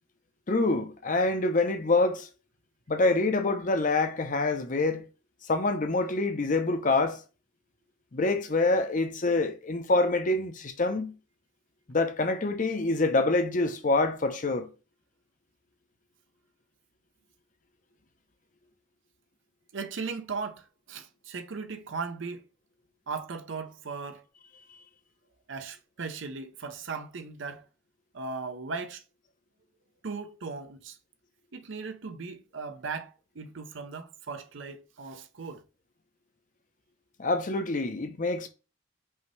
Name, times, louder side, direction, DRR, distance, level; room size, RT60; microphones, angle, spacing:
voice 1, 0.5-2.3 2.9-5.0 5.5-7.2 8.1-11.1 11.9-14.7 37.2-38.5, left 2 dB, 40° left, 0.7 m, -26 dB
voice 2, 19.7-22.4 23.1-24.2 25.5-27.6 28.1-29.0 30.0-31.0 31.5-35.6, right 4 dB, 65° right, 0.7 m, -37 dB
5.5 x 2.9 x 3.1 m
head